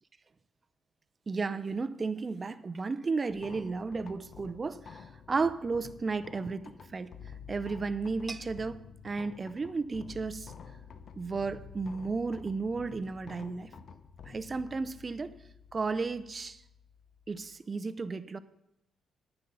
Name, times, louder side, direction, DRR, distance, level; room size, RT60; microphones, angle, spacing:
voice 1, 1.3-7.1 7.5-10.5 11.2-13.7 14.3-15.3 15.7-16.6 17.3-18.4, right 4 dB, 30° right, 14 dB, 0.5 m, -33 dB
sound 1, 3.3-17.6, left 6 dB, 55° left, 0.7 m, -50 dB
9.7 x 9.0 x 5.4 m, 0.87 s
cardioid pair, 120°, 0 cm